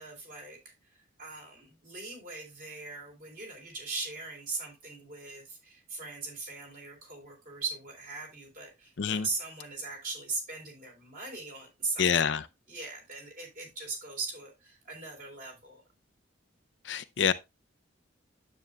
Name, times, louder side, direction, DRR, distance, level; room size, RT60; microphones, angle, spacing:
voice 1, 0.0-15.8, right 3 dB, 45° right, 3.8 m, -40 dB
voice 2, 12.0-12.4 16.9-17.3, left 7 dB, 60° left, 0.5 m, -26 dB
9.5 x 8.0 x 2.3 m
head